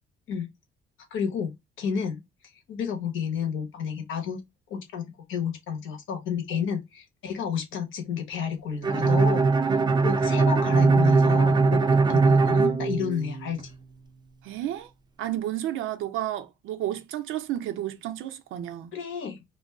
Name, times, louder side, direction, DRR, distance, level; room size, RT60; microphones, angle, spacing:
voice 1, 1.1-1.5 1.8-2.2 2.7-4.4 4.7-11.8 12.1-13.7 18.9-19.5, left 7 dB, 80° left, 0.9 m, -31 dB
Bowed string instrument, 8.8-13.6, right 4 dB, 20° right, 0.4 m, -21 dB
voice 2, 14.4-14.9 15.2-19.0, right 12 dB, 85° right, 0.4 m, -32 dB
2.5 x 2.2 x 3.4 m
cardioid pair, 90°, 20 cm